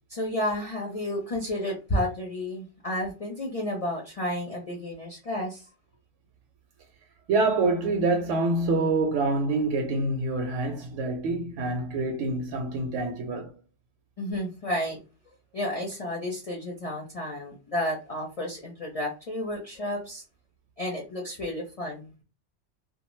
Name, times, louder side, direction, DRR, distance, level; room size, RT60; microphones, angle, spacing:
voice 1, 0.1-5.7 14.2-15.0 15.5-20.2 20.8-22.1, left 1 dB, 40° left, 0.6 m, -31 dB
voice 2, 7.3-13.5, right 3 dB, 80° right, 0.9 m, -26 dB
2.4 x 2.2 x 3.0 m
omnidirectional pair, 1.2 m